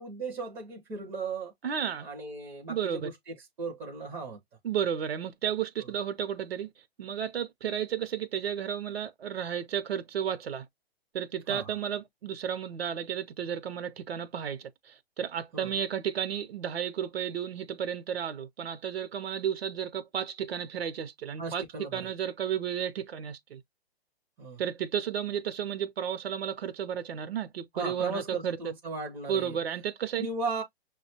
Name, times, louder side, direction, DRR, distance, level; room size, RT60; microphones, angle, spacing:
voice 1, 0.0-1.5 2.0-4.4 11.5-11.7 15.5-15.7 21.4-22.1 24.4-24.6 27.7-29.6 30.2-30.6, right 4 dB, 10° right, 0.4 m, -36 dB
voice 2, 1.6-2.1 2.7-3.1 4.6-6.7 7.0-10.6 11.1-14.7 15.2-21.6 21.9-23.6 24.6-28.6 29.3-30.3, right 8 dB, 75° right, 0.7 m, -33 dB
6.0 x 2.2 x 2.8 m
hypercardioid pair, 140°, 31 cm